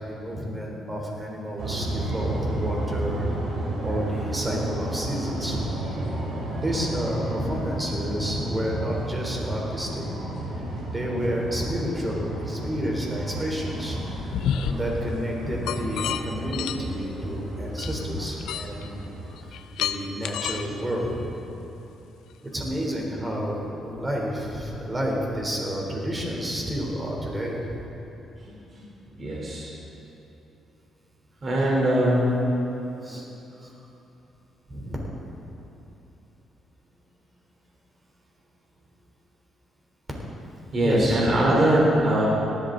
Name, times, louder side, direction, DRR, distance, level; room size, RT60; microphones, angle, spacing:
voice 1, 0.0-3.3 3.8-5.7 6.6-10.1 10.9-19.1 19.5-21.3 22.5-27.9 29.1-29.2 33.0-33.3 33.6-33.7 34.7-35.0 40.8-41.4, equal, 20° right, -1 dB, 3.6 m, -30 dB
sound 1, 1.6-19.4, right 1 dB, 70° right, 3.8 m, -32 dB
sound 2, 13.7-14.7 15.7-16.2 16.5-16.8 17.8-18.9 19.4-20.7, left 9 dB, 85° left, 0.6 m, -30 dB
voice 2, 29.2-29.7 31.4-32.3 40.7-42.3, right 1 dB, 40° right, -4 dB, 3.7 m, -21 dB
18.5 x 13.0 x 4.0 m, 3.0 s
cardioid pair, 90°, 0 cm